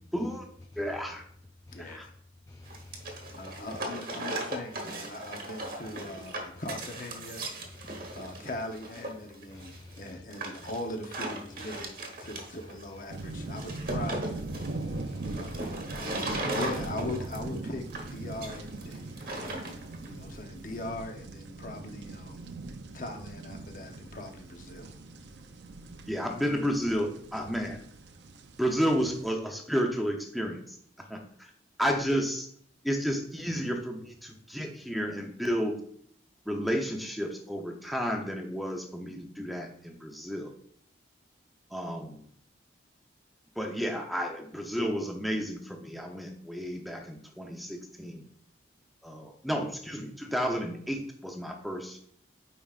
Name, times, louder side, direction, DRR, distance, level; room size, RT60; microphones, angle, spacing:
voice 1, 0.1-0.4 0.8-1.2 1.8-2.1 26.1-27.8 28.6-30.8 31.1-31.2 31.8-32.5 32.8-35.8 36.5-40.5 41.7-42.2 43.6-48.2 49.0-52.0, equal, ahead, 2 dB, 0.7 m, -31 dB
voice 2, 1.7-2.1 3.3-7.4 8.1-11.9 12.2-14.3 15.2-15.6 15.8-19.3 20.1-22.5 22.9-24.9, left 2 dB, 45° left, 4 dB, 0.8 m, -40 dB
voice 3, 2.5-3.6 7.8-8.2 9.5-10.1 14.6-15.7, left 2 dB, 15° left, 4 dB, 0.3 m, -50 dB
sound 1, 2.7-20.1, right 2 dB, 50° right, 1.2 m, -38 dB
sound 2, 13.1-29.3, right 2 dB, 70° right, 0.5 m, -40 dB
8.7 x 5.0 x 2.4 m, 0.62 s
head